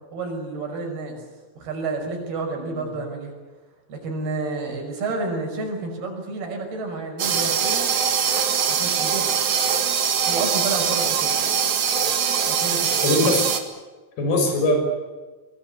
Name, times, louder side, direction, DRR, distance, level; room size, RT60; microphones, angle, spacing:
voice 1, 0.1-1.2 1.6-3.3 3.9-7.9 8.7-9.4 10.3-11.4 12.4-13.1, right 3 dB, 85° right, 3 dB, 7.8 m, -30 dB
voice 2, 2.6-2.9 13.0-13.5 14.2-14.8, left 1 dB, 80° left, 4 dB, 7.6 m, -21 dB
sound 1, 7.2-13.6, right 7 dB, 55° right, 3.0 m, -22 dB
24.0 x 21.5 x 8.2 m, 1.3 s
omnidirectional pair, 4.4 m